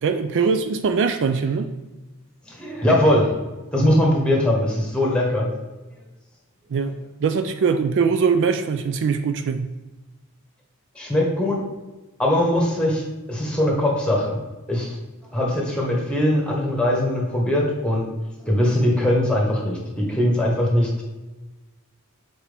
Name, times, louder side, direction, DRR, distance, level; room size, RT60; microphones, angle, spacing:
voice 1, 0.0-1.7 6.7-6.9 7.2-9.7, right 5 dB, 55° right, 8 dB, 0.3 m, -21 dB
voice 2, 2.5-3.3 3.7-5.5 10.9-11.6 12.2-13.0 13.3-14.4 14.7-15.0 15.3-18.1 18.4-21.0, left 1 dB, 5° left, -2 dB, 1.3 m, -21 dB
7.2 x 4.3 x 3.5 m, 1.1 s
head